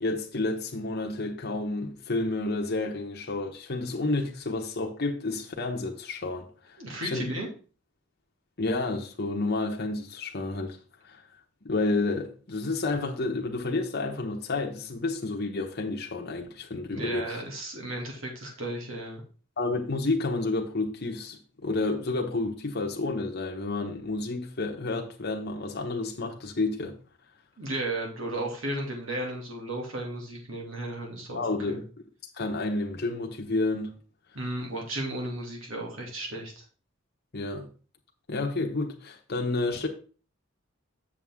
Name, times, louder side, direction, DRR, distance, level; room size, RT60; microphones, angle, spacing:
voice 1, 0.0-6.8 7.0-7.3 8.6-10.8 11.1-11.2 11.6-17.3 19.6-27.0 31.3-31.8 32.3-33.9 37.3-37.7 38.3-39.9, left 2 dB, 55° left, 1.0 m, -30 dB
voice 2, 6.8-7.5 16.9-19.2 27.6-31.8 34.3-36.6, right 1 dB, 80° right, 2.5 m, -34 dB
7.2 x 7.1 x 3.6 m
head